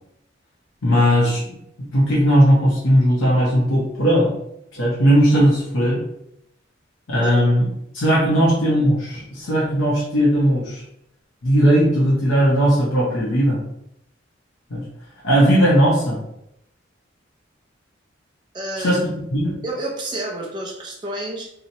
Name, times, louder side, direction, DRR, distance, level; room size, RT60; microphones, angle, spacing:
voice 1, 0.8-1.4 1.9-4.3 4.7-6.0 7.1-7.6 7.9-10.8 11.4-13.6 14.7-14.8 15.2-16.2 18.8-19.0 19.3-19.6, equal, 85° left, -5 dB, 0.7 m, -17 dB
voice 2, 7.2-7.5 18.5-19.1 19.6-21.5, right 1 dB, 25° right, 0 dB, 0.3 m, -30 dB
2.8 x 2.0 x 2.7 m, 0.80 s
head